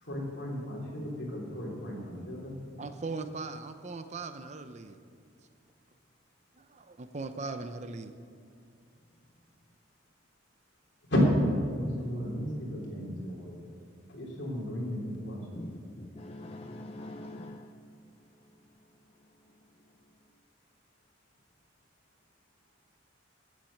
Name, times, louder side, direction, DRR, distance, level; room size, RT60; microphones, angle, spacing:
voice 1, 0.0-2.6 11.1-11.2 11.6-13.7 14.1-15.8, left 1 dB, 60° left, -2 dB, 3.3 m, -35 dB
voice 2, 2.8-5.0 6.5-8.1, right 3 dB, 35° right, 9 dB, 0.5 m, -39 dB
voice 3, 15.6-17.7, left 1 dB, 30° left, 4 dB, 0.5 m, -44 dB
14.5 x 7.4 x 6.5 m, 2.4 s
head